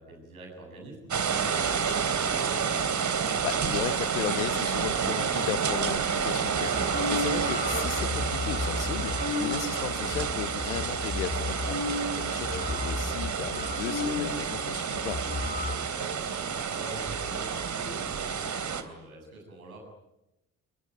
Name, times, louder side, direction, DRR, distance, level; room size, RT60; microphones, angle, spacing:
voice 1, 0.0-2.4 15.6-19.8, right 2 dB, 85° right, 1 dB, 7.7 m, -46 dB
sound 1, 1.1-18.8, right 6 dB, 45° right, 3.2 m, -29 dB
voice 2, 3.4-6.7 7.1-11.8 12.2-15.2, left 14 dB, 80° left, 18 dB, 1.0 m, -35 dB
sound 2, 6.5-14.4 14.7-14.8 15.0-15.8, left 3 dB, 25° left, 3.8 m, -34 dB
30.0 x 21.5 x 9.2 m, 0.93 s
figure-of-eight pair, 40°, 42 cm